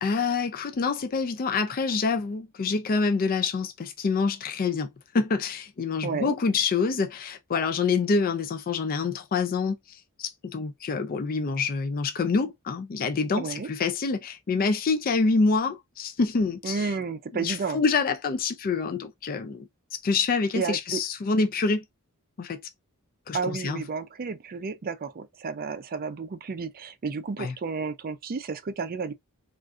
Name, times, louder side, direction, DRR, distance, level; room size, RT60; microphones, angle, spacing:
voice 1, 0.0-4.9 5.1-16.9 17.4-21.8 22.4-22.6 23.3-23.8 27.4-27.5, left 4 dB, 40° left, 0.4 m, -26 dB
voice 2, 6.0-6.4 13.4-13.7 16.6-17.8 20.5-21.0 23.3-29.1, right 5 dB, 40° right, 0.4 m, -32 dB
3.6 x 2.5 x 2.4 m
head